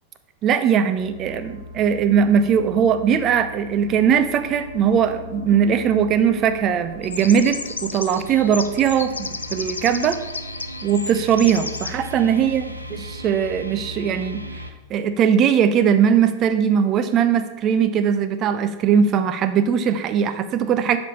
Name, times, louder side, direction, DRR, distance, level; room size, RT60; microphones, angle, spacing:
voice 1, 0.4-10.2 10.8-12.6 13.1-14.4 14.9-21.0, right 7 dB, 30° right, 10 dB, 0.6 m, -20 dB
sound 1, 0.9-14.7, equal, 85° right, 0.6 m, -37 dB
sound 2, 7.0-11.9, left 4 dB, 75° left, 0.5 m, -33 dB
7.5 x 5.3 x 5.5 m, 1.1 s
figure-of-eight pair, 90°, 0 cm